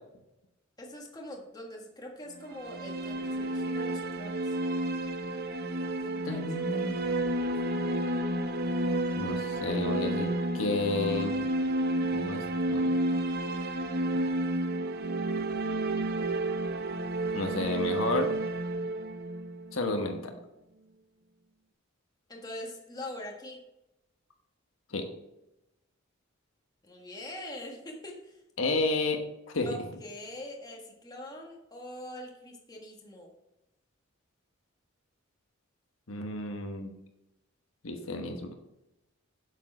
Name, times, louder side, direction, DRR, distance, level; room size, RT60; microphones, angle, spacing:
voice 1, 0.8-4.9 6.0-6.9 22.3-23.6 26.8-28.4 29.6-33.3, left 1 dB, 20° left, 0 dB, 1.5 m, -43 dB
sound 1, 2.4-20.3, right 1 dB, 50° right, 0.6 m, -31 dB
voice 2, 6.3-6.9 9.2-11.3 12.0-13.0 17.3-18.3 19.7-20.3 24.9-25.0 28.6-29.2 29.5-29.7 36.1-36.9 37.8-38.5, left 2 dB, 85° left, 4 dB, 1.2 m, -31 dB
8.0 x 7.4 x 4.3 m, 0.90 s
head